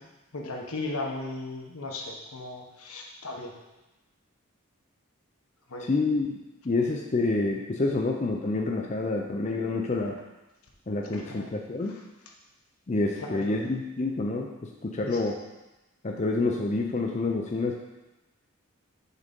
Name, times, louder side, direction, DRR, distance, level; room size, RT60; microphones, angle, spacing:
voice 1, 0.3-3.5 5.7-5.9 11.1-11.5 13.2-13.7 15.1-15.2, left 2 dB, 80° left, 0 dB, 1.1 m, -36 dB
voice 2, 5.8-6.4 6.6-10.2 10.9-12.0 12.9-15.4 16.0-17.8, left 3 dB, 30° left, 0 dB, 0.4 m, -28 dB
6.4 x 3.8 x 5.2 m, 1.0 s
head